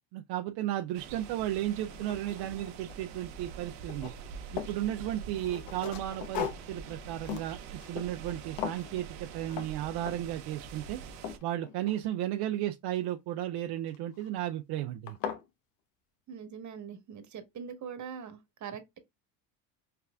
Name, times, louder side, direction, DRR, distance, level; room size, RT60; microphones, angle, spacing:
voice 1, 0.0-4.1 4.5-7.6 7.9-11.0 11.4-15.2, right 13 dB, 55° right, 0.6 m, -34 dB
sound 1, 0.9-11.4, right 6 dB, 75° right, 0.9 m, -45 dB
sound 2, 1.2-1.3 1.7-3.2 3.4-4.8 5.3-8.3 8.6-8.9 9.5-9.7 10.0-10.4 10.8-12.4 13.9-14.3 14.7-14.8 15.1-15.5, left 9 dB, 65° left, 1.0 m, -39 dB
voice 2, 16.3-19.0, right 7 dB, 40° right, 1.3 m, -42 dB
4.7 x 3.3 x 2.3 m
hypercardioid pair, 80°, 47 cm